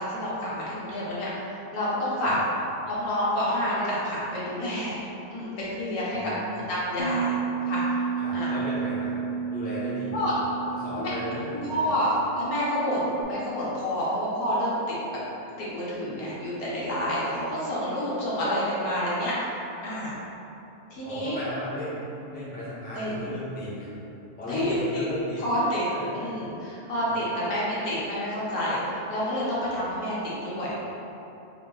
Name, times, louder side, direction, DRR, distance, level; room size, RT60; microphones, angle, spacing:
voice 1, 0.0-2.3 2.9-5.0 5.3-6.2 6.7-7.3 7.7-8.0 8.3-8.5 10.1-10.3 11.0-11.1 11.5-14.9 15.6-19.5 19.8-20.1 20.9-21.4 22.9-23.2 24.5-25.1 25.4-25.8 26.1-28.8 29.1-30.2 30.4-30.8, equal, 90° left, -8 dB, 1.5 m, -28 dB
voice 2, 6.1-6.7 8.2-9.2 9.5-10.3 10.7-11.9 21.0-22.0 22.3-23.9 24.4-25.5 25.8-26.4 27.1-27.3, left 1 dB, 10° left, -9 dB, 0.6 m, -35 dB
Bass guitar, 7.0-13.2, right 5 dB, 70° left, 0.6 m, -32 dB
3.3 x 2.7 x 3.8 m, 3.0 s
omnidirectional pair, 1.5 m